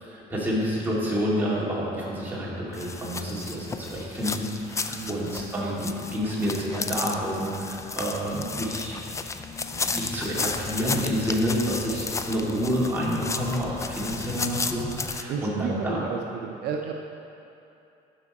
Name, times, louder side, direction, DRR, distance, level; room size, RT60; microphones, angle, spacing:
voice 1, 0.0-9.0 9.7-16.0, equal, 10° right, -7 dB, 2.3 m, -29 dB
sound 1, 2.7-15.2, left 4 dB, 15° left, 0.3 m, -33 dB
voice 2, 4.9-5.6 15.3-16.9, right 7 dB, 65° right, 2 dB, 0.6 m, -33 dB
12.0 x 6.1 x 4.1 m, 2.7 s
cardioid pair, 135°, 18 cm